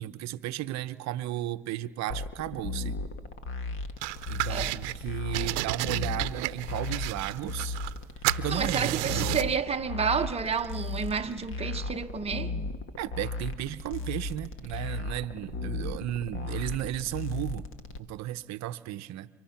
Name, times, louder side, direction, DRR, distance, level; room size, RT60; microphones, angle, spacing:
voice 1, 0.0-2.9 4.3-7.8 8.4-9.5 13.0-17.7 18.0-19.3, right 13 dB, 50° right, 0.9 m, -34 dB
sound 1, 2.1-18.0, left 3 dB, 35° left, 1.7 m, -36 dB
sound 2, 4.0-5.0 5.3-8.0 8.2-9.6, right 19 dB, 80° right, 0.8 m, -32 dB
voice 2, 8.5-12.5, right 6 dB, 15° right, 1.1 m, -30 dB
30.0 x 25.0 x 5.9 m
supercardioid pair, 105°, 34 cm